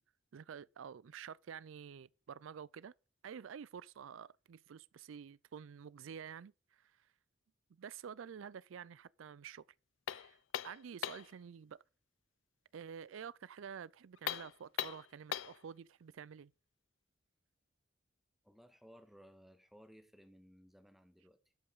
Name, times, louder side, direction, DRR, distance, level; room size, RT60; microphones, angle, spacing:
voice 1, 0.3-2.9 3.2-7.1 7.7-9.7 10.1-10.4 10.6-11.8 12.7-16.5, right 7 dB, 80° right, 0.4 m, -49 dB
sound 1, 10.1-11.4 14.2-15.6, left 10 dB, 75° left, 0.5 m, -40 dB
voice 2, 18.4-21.5, equal, ahead, 1.6 m, -60 dB
13.0 x 5.6 x 5.3 m
head